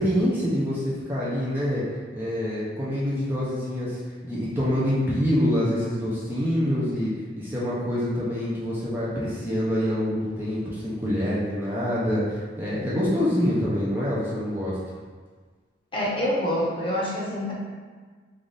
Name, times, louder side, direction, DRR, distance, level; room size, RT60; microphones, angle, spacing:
voice 1, 0.0-1.8 2.1-7.1 7.4-14.8, equal, 10° right, -9 dB, 0.5 m, -26 dB
voice 2, 15.9-17.5, left 1 dB, 30° left, -6 dB, 0.8 m, -26 dB
3.3 x 2.4 x 3.9 m, 1.5 s
head